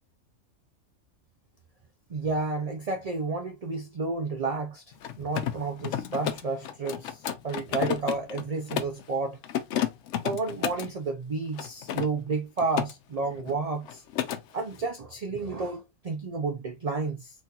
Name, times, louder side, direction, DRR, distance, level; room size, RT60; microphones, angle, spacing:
voice 1, 2.1-4.8 5.2-7.2 7.4-9.4 10.2-14.0 14.5-17.3, right 3 dB, 55° right, 0.4 m, -31 dB
Mechanisms, 4.9-9.0 9.4-10.9 11.5-12.9 13.2-13.6 13.8-14.4, left 10 dB, 70° left, 0.8 m, -32 dB
4.0 x 2.5 x 2.8 m
omnidirectional pair, 1.4 m